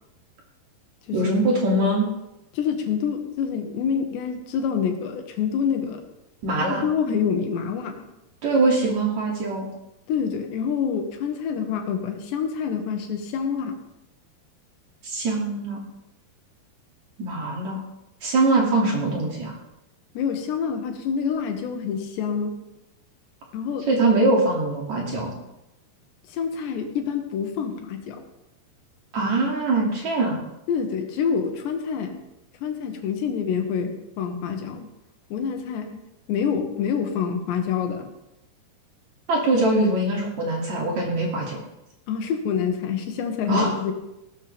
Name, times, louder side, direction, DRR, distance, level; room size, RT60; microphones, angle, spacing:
voice 1, 1.1-2.1 6.4-6.8 8.4-9.7 15.0-15.8 17.2-17.8 18.2-19.6 23.9-25.3 29.1-30.4 39.3-41.6 43.5-43.7, right 2 dB, 45° right, -2 dB, 3.7 m, -22 dB
voice 2, 2.5-6.0 6.6-8.1 10.1-13.8 20.2-22.6 23.5-23.9 26.3-28.2 30.7-32.2 32.6-34.9 35.3-38.1 42.1-43.9, left 7 dB, 85° left, 4 dB, 3.7 m, -27 dB
17.5 x 12.5 x 3.6 m, 0.90 s
omnidirectional pair, 4.9 m